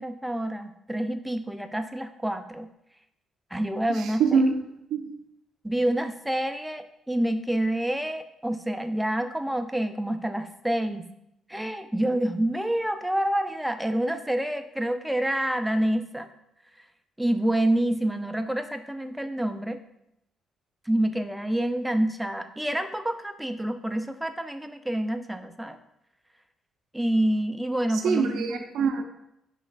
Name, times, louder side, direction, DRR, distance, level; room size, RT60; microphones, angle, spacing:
voice 1, 0.0-2.7 3.5-4.4 5.6-11.1 11.5-16.3 17.2-19.8 20.9-25.8 26.9-28.6, right 1 dB, 5° right, 8 dB, 0.3 m, -27 dB
voice 2, 4.0-4.6 4.9-5.1 27.9-29.0, right 5 dB, 85° right, 4 dB, 0.4 m, -24 dB
5.3 x 3.2 x 2.4 m, 0.81 s
cardioid pair, 100°, 0 cm